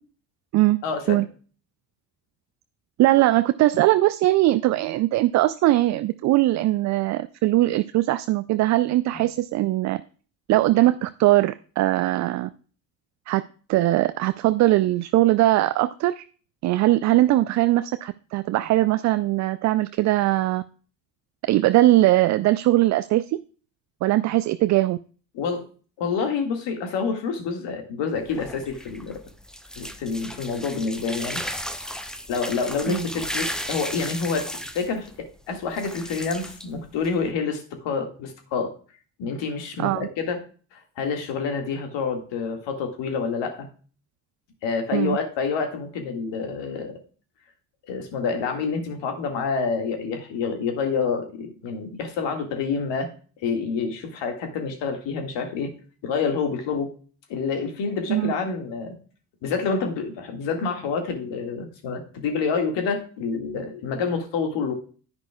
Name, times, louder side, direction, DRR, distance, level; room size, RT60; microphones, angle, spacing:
voice 1, 0.8-1.2 9.1-9.2 25.3-25.7 26.0-29.2 29.8-31.4 32.3-38.7 39.2-40.4 40.7-43.7 44.6-46.9 47.9-53.1 53.4-55.7 56.0-56.9 57.3-58.9 59.4-64.7, left 5 dB, 60° left, 5 dB, 2.0 m, -28 dB
voice 2, 3.0-10.0 10.5-12.5 13.3-13.4 13.7-16.2 16.6-20.6 21.4-23.4 24.0-25.0 32.9-33.0 39.8-40.1 44.9-45.2 58.1-58.3, right 16 dB, 40° right, 13 dB, 0.4 m, -20 dB
sound 1, 28.2-37.3, equal, ahead, 0.8 m, -35 dB
10.0 x 9.6 x 2.3 m, 0.39 s
figure-of-eight pair, 50°, 49 cm